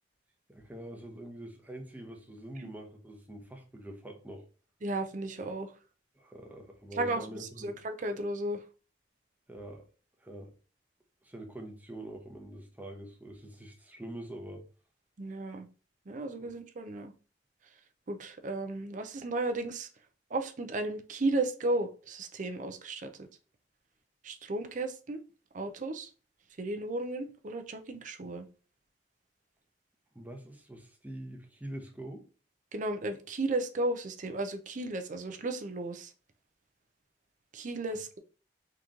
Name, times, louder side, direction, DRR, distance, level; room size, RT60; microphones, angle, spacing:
voice 1, 0.5-4.4 6.1-7.8 9.5-9.8 10.2-10.5 11.2-14.6 16.4-16.5 30.1-32.2 37.9-38.2, right 1 dB, 10° right, 0.9 m, -45 dB
voice 2, 4.8-5.7 7.0-7.2 7.6-8.6 15.2-15.7 16.1-17.1 18.1-19.9 20.3-23.1 24.2-25.2 25.5-26.1 26.6-28.5 32.7-36.1 37.5-38.2, right 2 dB, 45° right, 0.5 m, -34 dB
3.8 x 3.0 x 3.6 m
head